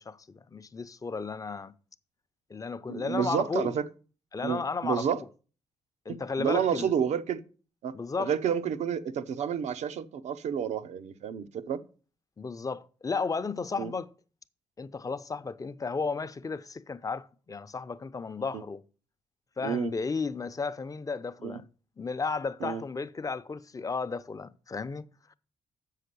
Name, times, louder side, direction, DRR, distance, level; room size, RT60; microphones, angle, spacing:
voice 1, 0.0-1.7 2.5-3.7 4.3-5.2 6.1-6.9 7.9-8.3 12.4-14.1 14.8-18.8 19.6-21.7 22.0-25.3, left 4 dB, 30° left, 0.7 m, -34 dB
voice 2, 2.9-3.8 4.4-5.2 6.1-7.4 7.8-11.8 13.8-13.9 18.5-18.6 19.6-19.9 21.4-21.6 22.6-22.8, right 8 dB, 80° right, 0.8 m, -30 dB
7.6 x 5.7 x 6.7 m
cardioid pair, 65°, 12 cm